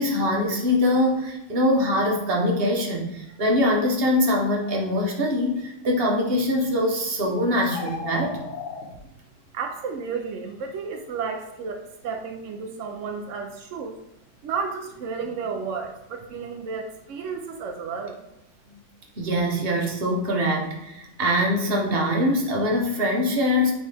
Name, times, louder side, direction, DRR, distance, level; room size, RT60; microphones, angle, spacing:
voice 1, 0.0-8.4 18.7-18.8 19.2-23.7, left 1 dB, 40° right, 0 dB, 1.1 m, -23 dB
sound 1, 7.6-8.8, left 4 dB, 65° left, 1.6 m, -35 dB
voice 2, 9.5-14.0 14.4-18.2, right 5 dB, 80° right, 4 dB, 0.6 m, -32 dB
9.2 x 3.3 x 3.4 m, 0.86 s
omnidirectional pair, 2.0 m